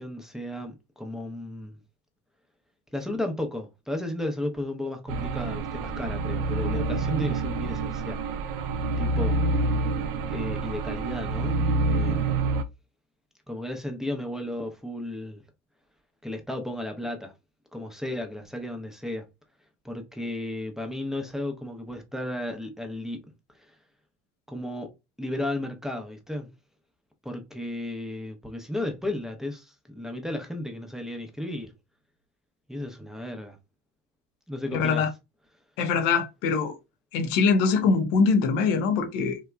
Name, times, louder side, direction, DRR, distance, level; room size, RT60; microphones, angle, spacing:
voice 1, 0.0-1.8 2.9-8.2 9.0-9.4 10.3-11.6 11.9-12.6 13.5-15.4 16.2-17.3 17.7-19.2 19.8-23.2 23.6-23.7 24.5-24.9 25.2-26.5 27.2-31.7 32.7-33.6 34.5-35.0, left 1 dB, ahead, 0.7 m, -34 dB
sound 1, 5.1-12.6, right 3 dB, 60° right, 0.5 m, -27 dB
voice 2, 34.7-35.1 35.8-36.7 37.1-39.4, left 5 dB, 80° left, 0.7 m, -23 dB
2.8 x 2.3 x 2.2 m
supercardioid pair, 80°, 37 cm